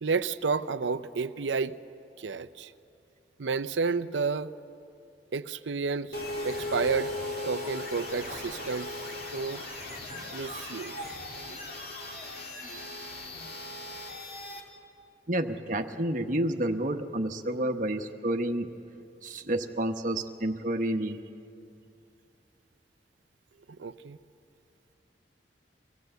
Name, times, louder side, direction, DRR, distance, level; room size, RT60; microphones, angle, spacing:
voice 1, 0.0-1.7 2.2-2.7 3.4-4.5 5.3-6.2 6.4-7.1 7.4-8.9 9.3-9.6 10.1-11.1 23.8-24.2, right 4 dB, 90° right, 13 dB, 0.6 m, -31 dB
sound 1, 6.1-14.6, left 2 dB, 55° left, 2.6 m, -38 dB
voice 2, 15.3-18.7 19.2-21.2, right 1 dB, 45° right, 6 dB, 1.1 m, -29 dB
24.5 x 17.0 x 7.9 m, 2.6 s
head